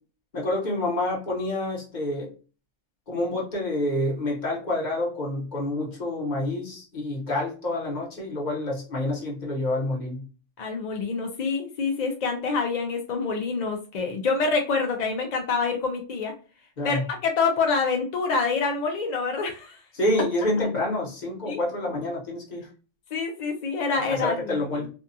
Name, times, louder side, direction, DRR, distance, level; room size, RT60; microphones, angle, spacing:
voice 1, 0.3-2.3 3.1-10.2 16.8-17.0 19.9-22.7 23.9-24.9, left 1 dB, 40° left, -3 dB, 1.0 m, -28 dB
voice 2, 10.6-16.3 16.8-19.8 20.6-20.7 21.5-21.6 23.1-24.9, left 4 dB, 60° left, 2 dB, 0.4 m, -26 dB
2.6 x 2.3 x 2.6 m, 0.36 s
omnidirectional pair, 1.3 m